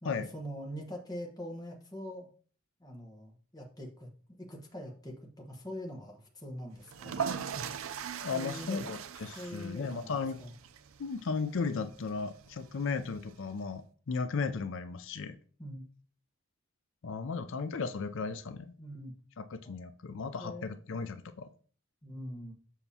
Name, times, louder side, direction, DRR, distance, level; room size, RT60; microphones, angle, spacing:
voice 1, 0.0-2.3 2.8-4.1 4.4-7.3 8.3-8.9 9.3-10.5 15.6-15.8 18.8-19.1 20.4-20.7 22.0-22.5, equal, 20° left, 1 dB, 1.2 m, -43 dB
sound 1, 6.8-13.6, right 7 dB, 70° right, 0.5 m, -41 dB
voice 2, 8.2-10.4 11.0-15.4 17.0-18.8 19.4-21.5, left 4 dB, 60° left, 11 dB, 0.5 m, -35 dB
7.2 x 5.8 x 2.8 m, 0.43 s
head